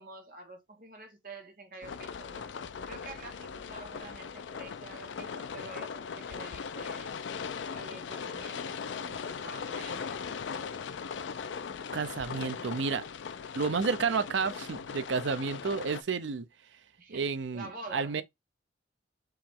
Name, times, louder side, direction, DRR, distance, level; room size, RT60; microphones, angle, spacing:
voice 1, 0.0-2.5 2.8-7.1 7.7-10.4 17.0-17.3 17.5-18.2, right 3 dB, 50° right, 1.4 m, -47 dB
sound 1, 1.8-16.0, left 6 dB, 85° left, 0.4 m, -39 dB
voice 2, 11.9-13.0 13.5-16.5 17.1-18.2, right 5 dB, 90° right, 0.6 m, -31 dB
4.6 x 2.9 x 3.6 m
head